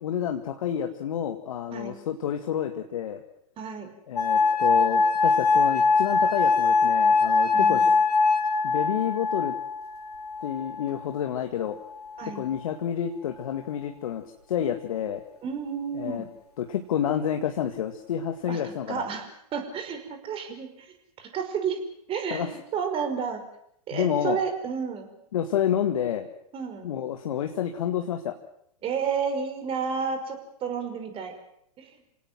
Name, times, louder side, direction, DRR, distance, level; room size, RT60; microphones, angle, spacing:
voice 1, 0.0-3.2 4.1-7.9 8.6-9.5 10.4-11.8 12.3-14.2 14.5-15.2 16.0-16.2 16.6-19.1 22.3-22.6 23.9-24.4 25.3-26.3 26.8-28.4, left 9 dB, 60° left, 5 dB, 2.1 m, -29 dB
voice 2, 3.6-3.9 7.5-7.9 12.2-12.4 15.4-16.3 18.5-20.9 21.2-21.8 22.1-23.4 23.9-25.1 26.5-26.9 28.8-31.4 31.8-32.0, right 6 dB, 30° right, 7 dB, 5.6 m, -31 dB
sound 1, 4.2-11.1 11.9-12.5, left 4 dB, 80° left, 3.2 m, -23 dB
28.0 x 18.0 x 7.7 m, 0.73 s
figure-of-eight pair, 105°, 20 cm